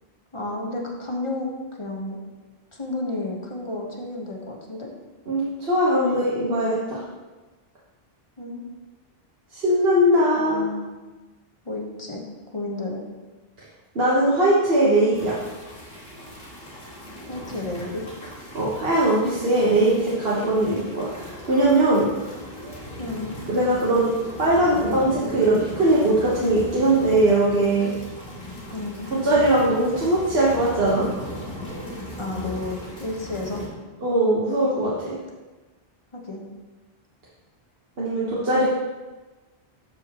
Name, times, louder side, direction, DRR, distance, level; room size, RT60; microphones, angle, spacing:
voice 1, 0.3-1.5 1.8-2.2 2.7-4.9 8.4-8.6 10.3-10.9 11.6-12.2 12.5-13.0 17.3-18.0 23.0-23.4 28.7-29.1 32.2-33.6 36.1-36.5, left 2 dB, 30° left, -1 dB, 1.1 m, -31 dB
voice 2, 5.3-7.0 9.5-10.7 13.9-15.4 18.5-22.1 23.5-24.1 24.4-27.9 29.2-31.1 34.0-35.2 38.0-38.6, right 1 dB, 70° right, -7 dB, 1.4 m, -20 dB
sound 1, 15.1-33.7, equal, 75° left, 2.5 m, -37 dB
13.5 x 4.8 x 2.9 m, 1.2 s
omnidirectional pair, 1.0 m